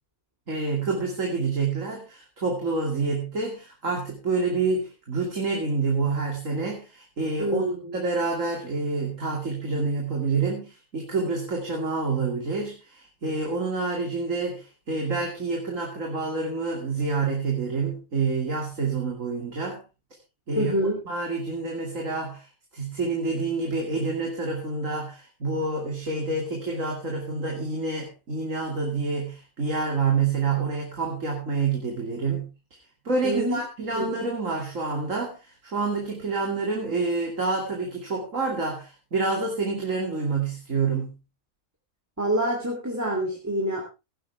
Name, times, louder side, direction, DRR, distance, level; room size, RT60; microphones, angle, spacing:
voice 1, 0.5-7.7 7.9-19.8 20.5-20.7 21.1-32.5 33.0-41.1, right 4 dB, 60° right, 0 dB, 3.0 m, -28 dB
voice 2, 7.4-8.0 20.6-21.0 33.2-33.6 33.9-34.1 42.2-43.8, right 1 dB, 10° right, 0 dB, 3.0 m, -26 dB
17.5 x 10.5 x 3.5 m, 0.28 s
omnidirectional pair, 1.5 m